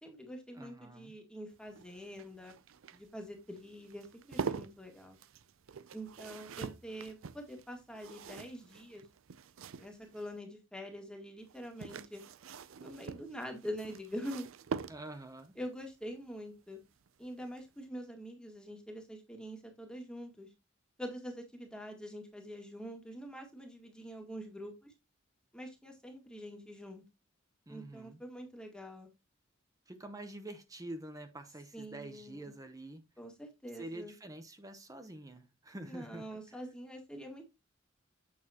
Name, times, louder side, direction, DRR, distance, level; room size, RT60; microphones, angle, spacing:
voice 1, 0.0-2.5 2.9-5.2 5.9-9.0 9.8-12.2 12.8-14.5 15.6-16.8 17.2-20.5 21.0-24.9 25.5-27.0 27.7-29.1 31.7-32.5 33.2-34.1 35.8-37.4, equal, 5° left, 2.0 m, -45 dB
voice 2, 0.5-1.1 14.9-15.5 27.7-28.2 29.9-33.0 33.7-36.6, right 1 dB, 20° right, 0.9 m, -47 dB
sound 1, 1.5-10.3 11.5-15.4 17.0-17.3 17.6-17.7, right 5 dB, 80° right, 0.5 m, -44 dB
8.6 x 6.5 x 2.9 m
head